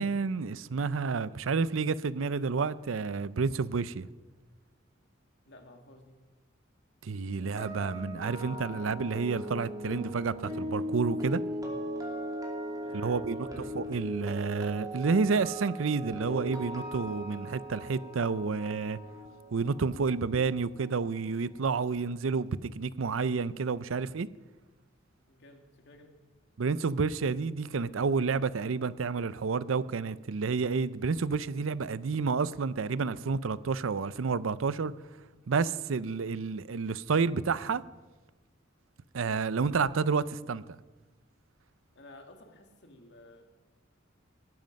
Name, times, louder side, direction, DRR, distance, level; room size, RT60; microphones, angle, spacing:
voice 1, 0.0-4.1 7.0-11.4 12.9-19.0 19.5-24.3 26.6-34.9 35.5-37.8 39.1-40.6, right 4 dB, 90° right, 0.5 m, -30 dB
voice 2, 5.5-6.2 12.8-13.7 25.3-26.2 41.9-43.4, left 1 dB, 60° left, 2.3 m, -53 dB
sound 1, 7.3-21.4 21.7-22.0, equal, 20° right, 2.6 m, -39 dB
19.0 x 11.0 x 5.3 m
head